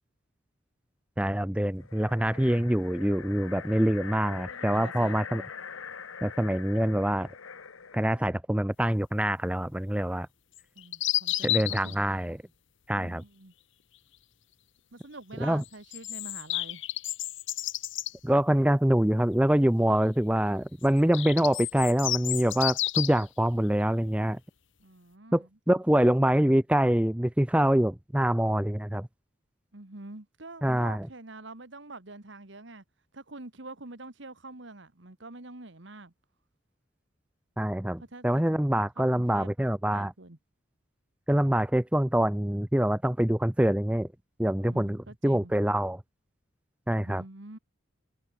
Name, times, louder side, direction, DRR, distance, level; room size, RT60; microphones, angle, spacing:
voice 1, 1.2-5.4 6.2-7.3 7.9-10.3 11.4-12.4 12.9-13.2 15.4-15.6 18.2-24.4 25.3-29.1 30.6-31.1 37.6-40.1 41.3-44.1 44.4-46.0 46.9-47.2, right 1 dB, 5° right, 0.5 m, -25 dB
sound 1, 1.8-8.2, left 6 dB, 90° left, 1.1 m, -43 dB
voice 2, 4.5-5.3 10.8-12.1 12.9-13.5 14.9-16.8 24.8-25.5 29.7-32.8 33.1-36.1 38.0-38.4 39.0-39.5 39.9-40.4 44.6-45.5 47.0-47.6, right 2 dB, 65° right, 1.8 m, -46 dB
sound 2, 10.6-11.9 15.6-18.1 20.8-23.2, left 15 dB, 70° left, 1.3 m, -31 dB
head